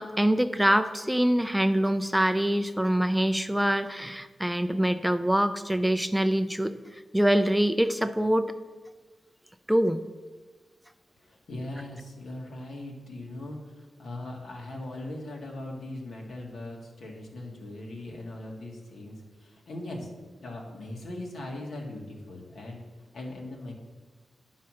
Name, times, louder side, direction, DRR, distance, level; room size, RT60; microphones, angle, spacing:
voice 1, 0.0-8.5 9.7-10.0, right 1 dB, 5° right, 10 dB, 0.4 m, -25 dB
voice 2, 11.2-20.1 20.4-22.8 23.1-23.7, left 1 dB, 80° left, -1 dB, 2.2 m, -39 dB
10.5 x 5.6 x 6.3 m, 1.4 s
wide cardioid pair, 120°, 0 cm